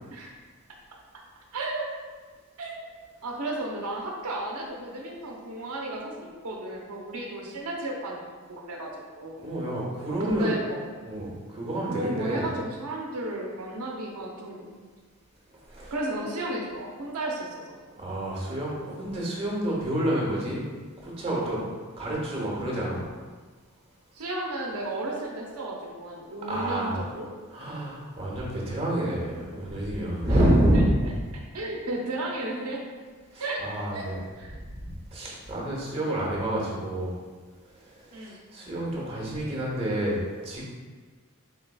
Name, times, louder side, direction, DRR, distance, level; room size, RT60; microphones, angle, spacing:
voice 1, 1.5-1.9 2.6-2.7 3.2-9.4 10.2-10.8 11.9-14.7 15.9-17.8 24.1-27.3 30.2-30.4 30.7-30.8 31.5-32.8 33.4-33.6 33.9-34.6 38.1-38.4, right 1 dB, 85° right, -1 dB, 0.7 m, -33 dB
voice 2, 9.4-10.5 11.0-12.5 15.7-15.9 18.0-20.6 21.0-21.6 22.0-23.0 26.5-27.0 27.5-31.1 33.3-34.2 34.5-37.2 37.8-40.6, right 1 dB, 25° right, -4 dB, 0.8 m, -28 dB
4.0 x 3.9 x 2.3 m, 1.4 s
head